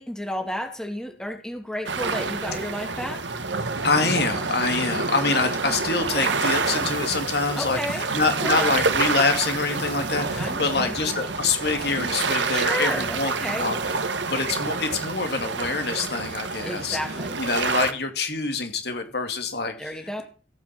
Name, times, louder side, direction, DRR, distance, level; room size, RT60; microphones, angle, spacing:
voice 1, 0.0-3.2 7.5-8.0 8.4-8.8 10.3-11.0 12.5-13.7 16.6-17.4 19.8-20.2, equal, 5° left, 4 dB, 2.5 m, -32 dB
sound 1, 1.8-17.9, right 4 dB, 85° right, 1.5 m, -28 dB
voice 2, 3.8-13.8 14.3-17.0 17.4-19.9, left 4 dB, 60° left, 6 dB, 2.6 m, -25 dB
15.0 x 9.2 x 6.0 m, 0.35 s
head